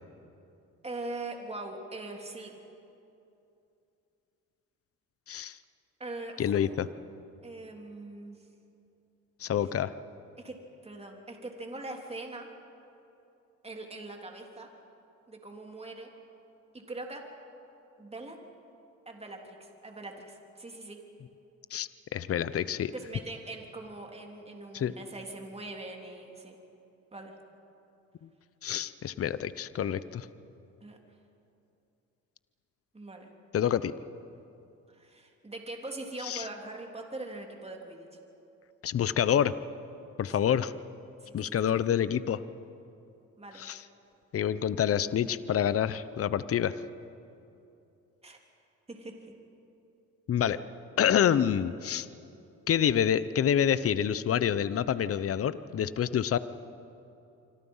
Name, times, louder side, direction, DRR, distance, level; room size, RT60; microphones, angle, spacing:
voice 1, 0.8-2.5 6.0-6.7 7.4-8.4 10.4-12.5 13.6-14.7 15.3-16.1 16.7-17.3 18.0-18.4 19.0-19.6 19.8-21.0 22.9-26.6 27.1-27.4 30.8-31.0 32.9-33.3 34.9-38.1 41.2-41.4 43.4-43.7 48.2-48.4 48.9-49.3, right 2 dB, 20° right, 2 dB, 3.4 m, -42 dB
voice 2, 5.3-5.6 6.4-6.9 9.4-9.9 21.7-22.9 24.7-24.9 28.2-28.3 28.6-30.3 33.5-33.9 36.2-36.4 38.8-39.5 40.2-40.7 41.3-42.4 43.6-43.8 44.3-46.7 50.3-50.6 51.0-52.1 52.7-56.4, left 9 dB, 50° left, 15 dB, 0.9 m, -27 dB
26.5 x 25.0 x 5.7 m, 2.8 s
cardioid pair, 90°, 30 cm